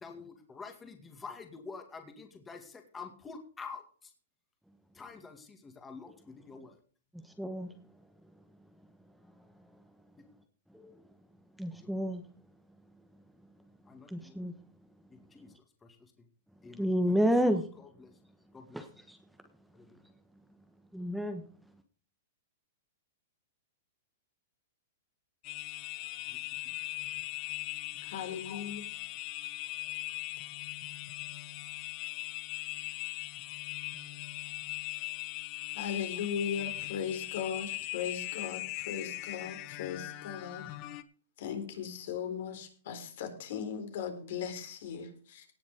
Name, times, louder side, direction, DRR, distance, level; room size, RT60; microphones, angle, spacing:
voice 1, 0.0-3.8 5.0-6.7 13.9-14.3 15.3-15.5 16.6-16.8 18.5-18.8, left 4 dB, 15° left, 5 dB, 2.2 m, -46 dB
voice 2, 7.2-7.7 10.7-10.9 11.6-12.2 14.1-14.5 16.7-17.6 18.7-19.2 20.9-21.4, equal, ahead, 7 dB, 1.2 m, -30 dB
sound 1, 25.4-41.0, left 18 dB, 40° left, 1.1 m, -40 dB
voice 3, 28.0-28.9 35.7-40.7 41.4-45.4, left 7 dB, 65° left, 6 dB, 4.0 m, -38 dB
18.0 x 7.2 x 5.1 m, 0.42 s
hypercardioid pair, 140°, 0 cm